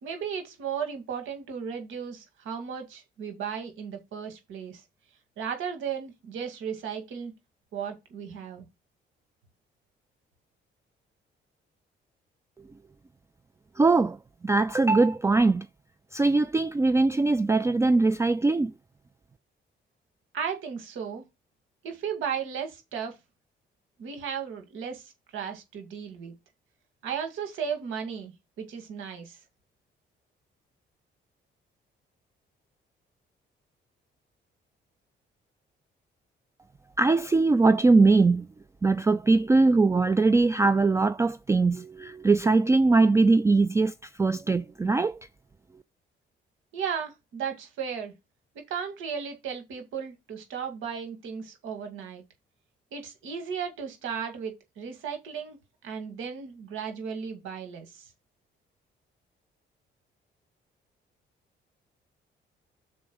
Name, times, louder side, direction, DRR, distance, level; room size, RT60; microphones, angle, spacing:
voice 1, 0.0-4.8 5.4-7.3 7.7-8.7 20.3-21.2 21.8-23.2 24.0-26.3 27.0-29.4 46.7-48.1 48.7-52.2 52.9-55.6 55.8-58.1, right 7 dB, 90° right, 2.2 m, -35 dB
voice 2, 13.8-14.2 14.4-15.7 16.1-18.7 37.0-38.5 38.8-45.2, right 3 dB, 15° right, 0.3 m, -21 dB
6.1 x 4.5 x 6.3 m
cardioid pair, 90°, 20 cm